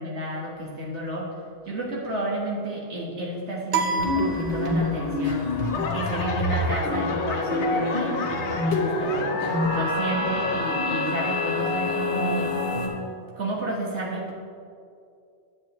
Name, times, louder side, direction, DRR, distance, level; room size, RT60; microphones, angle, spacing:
voice 1, 0.0-1.3 1.7-5.5 5.9-9.3 9.7-12.6 13.4-14.3, right 1 dB, 80° right, -4 dB, 1.9 m, -31 dB
sound 1, 3.7-5.2, right 4 dB, 60° right, 0.8 m, -28 dB
sound 2, 4.0-12.9, left 2 dB, 60° left, 1.4 m, -26 dB
Laughter / Clapping / Crowd, 5.2-10.0 10.3-10.9 11.4-11.5, left 5 dB, 85° left, 1.0 m, -33 dB
10.0 x 7.6 x 3.1 m, 2.4 s
omnidirectional pair, 1.2 m